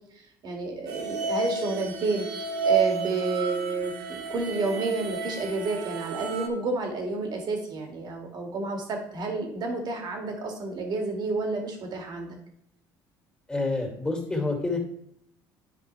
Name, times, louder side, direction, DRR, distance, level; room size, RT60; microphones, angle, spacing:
voice 1, 0.4-2.3 2.6-12.4, right 3 dB, 55° right, 2 dB, 2.3 m, -30 dB
sound 1, 0.9-6.5, right 4 dB, 90° right, 0.9 m, -31 dB
voice 2, 13.5-14.8, left 3 dB, 10° left, 1 dB, 2.7 m, -28 dB
11.0 x 4.9 x 3.4 m, 0.71 s
supercardioid pair, 85°, 9 cm